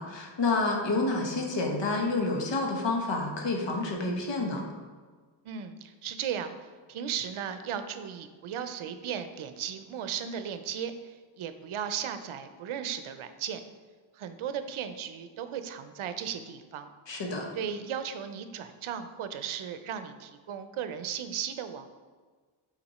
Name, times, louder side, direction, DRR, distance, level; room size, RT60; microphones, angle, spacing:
voice 1, 0.0-4.6 17.1-17.5, left 3 dB, 60° left, 1 dB, 1.1 m, -29 dB
voice 2, 5.4-6.5 6.9-13.6 14.2-16.9 17.5-21.9, right 8 dB, 90° right, 10 dB, 0.6 m, -36 dB
5.8 x 4.2 x 4.2 m, 1.5 s
wide cardioid pair, 180°, 48 cm